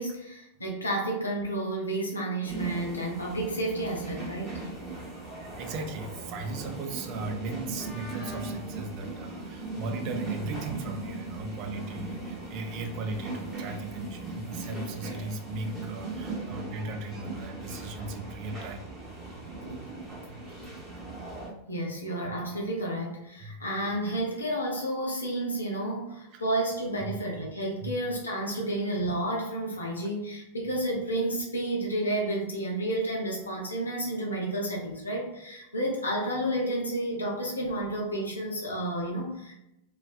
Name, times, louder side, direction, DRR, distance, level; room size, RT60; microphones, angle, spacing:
voice 1, 0.0-4.6 19.6-19.7 20.2-20.4 21.7-39.5, right 1 dB, 75° left, -1 dB, 0.6 m, -31 dB
sound 1, 2.4-21.5, right 3 dB, 10° right, 0.9 m, -38 dB
voice 2, 5.3-18.9 23.4-23.6 26.3-26.4 27.0-27.2 27.8-27.9 28.6-28.7, right 2 dB, 40° right, 4 dB, 0.4 m, -37 dB
2.3 x 2.2 x 2.4 m, 0.87 s
figure-of-eight pair, 90°, 0 cm